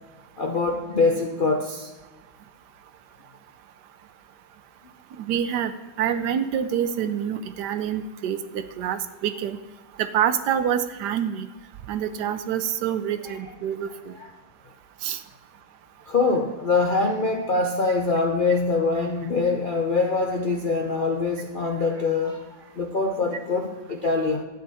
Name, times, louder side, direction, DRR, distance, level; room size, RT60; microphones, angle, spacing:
voice 1, 0.4-1.9 13.2-13.3 14.2-14.3 16.1-24.4, left 3 dB, 55° left, 2 dB, 0.5 m, -24 dB
voice 2, 5.2-5.7 6.0-9.6 10.0-11.5 11.9-14.2 15.0-15.2, right 9 dB, 75° right, 11 dB, 1.2 m, -26 dB
12.0 x 9.0 x 4.1 m, 1.3 s
omnidirectional pair, 1.9 m